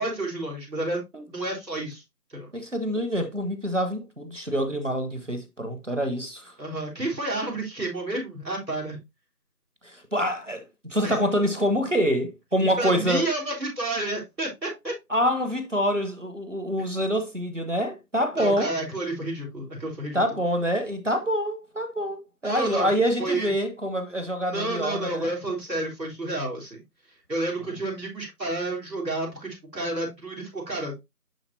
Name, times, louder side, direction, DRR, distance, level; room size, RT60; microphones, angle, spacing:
voice 1, 0.0-1.0 1.3-2.0 2.3-2.5 6.6-9.0 11.0-11.2 12.8-14.9 18.4-20.2 22.4-22.9 23.2-23.5 24.4-26.8 27.3-31.0, right 2 dB, 85° right, 3.7 m, -30 dB
voice 2, 2.5-6.5 9.8-10.6 10.9-13.3 15.1-18.7 20.1-25.3, equal, 50° right, 1.1 m, -26 dB
10.5 x 3.8 x 2.7 m
figure-of-eight pair, 175°, 49 cm